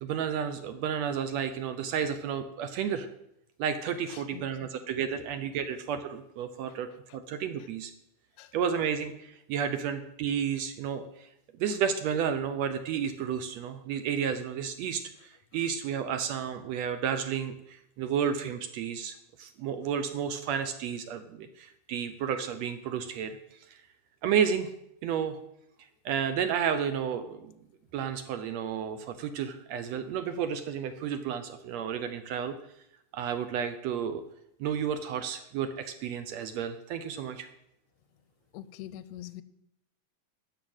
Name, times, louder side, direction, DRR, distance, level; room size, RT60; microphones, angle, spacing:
voice 1, 0.0-3.1 3.6-7.9 8.5-11.3 11.6-23.4 23.7-23.8 24.2-24.7 25.0-25.4 26.0-27.5 27.9-32.5 33.1-34.2 34.6-37.5, right 7 dB, 75° right, 10 dB, 1.6 m, -32 dB
voice 2, 4.1-4.7 5.2-5.3 5.6-5.7 6.7-7.2 8.4-8.5 15.5-15.7 38.5-39.4, left 13 dB, 80° left, 15 dB, 1.7 m, -46 dB
13.0 x 5.0 x 8.8 m, 0.79 s
omnidirectional pair, 3.7 m